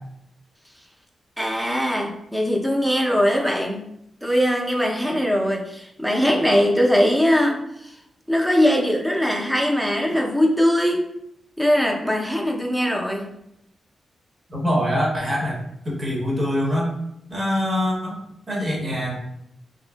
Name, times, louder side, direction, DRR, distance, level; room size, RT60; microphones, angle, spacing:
voice 1, 1.4-3.8 4.2-7.9 8.3-11.1 11.6-13.3, equal, 5° right, 1 dB, 0.5 m, -21 dB
voice 2, 14.5-15.6 15.8-16.9 17.3-18.2 18.5-19.2, equal, 35° right, -3 dB, 0.9 m, -23 dB
2.8 x 2.5 x 2.2 m, 0.80 s
cardioid pair, 65°, 0 cm